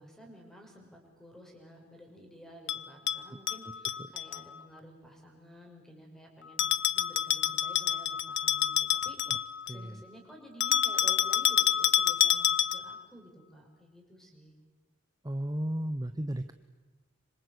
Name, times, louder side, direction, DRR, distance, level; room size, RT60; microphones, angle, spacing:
voice 1, 0.0-6.7 6.9-14.5, equal, ahead, 1 dB, 5.9 m, -52 dB
Bell, 2.7-4.4 6.6-9.8 10.6-13.0, left 11 dB, 60° left, 0.8 m, -28 dB
voice 2, 9.7-10.0 15.2-16.5, right 1 dB, 20° right, 9 dB, 0.8 m, -34 dB
26.0 x 26.0 x 8.1 m, 1.3 s
head